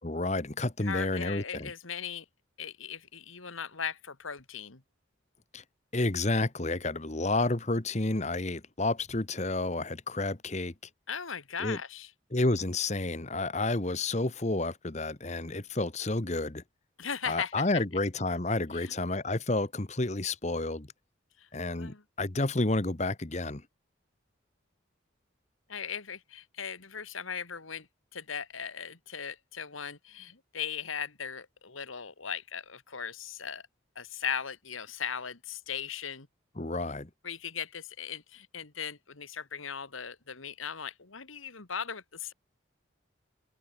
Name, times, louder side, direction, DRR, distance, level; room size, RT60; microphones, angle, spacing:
voice 1, 0.0-1.7 5.5-5.6 5.9-10.7 11.6-11.8 12.3-16.6 17.2-20.9 21.5-23.6 36.6-37.1, left 2 dB, 35° left, 1.2 m, -30 dB
voice 2, 0.8-2.3 2.6-4.8 11.1-12.1 17.0-17.8 18.7-18.9 21.4-21.5 21.8-22.0 25.7-27.9 28.1-33.6 34.0-36.3 37.2-42.3, left 7 dB, 85° left, 2.1 m, -38 dB
head